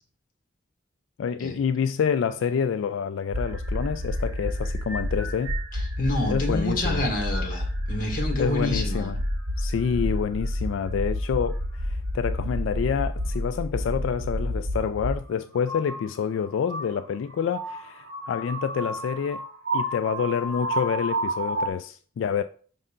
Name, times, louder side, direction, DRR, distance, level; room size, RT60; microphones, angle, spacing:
voice 1, 1.2-5.6 6.3-7.1 8.4-9.2 9.6-19.4 19.7-22.4, left 7 dB, 85° left, 0.3 m, -28 dB
sound 1, 3.3-15.2 15.6-21.7, equal, 80° right, 1.1 m, -30 dB
voice 2, 5.7-9.1, left 1 dB, 45° left, 1.6 m, -28 dB
5.5 x 5.3 x 3.7 m
head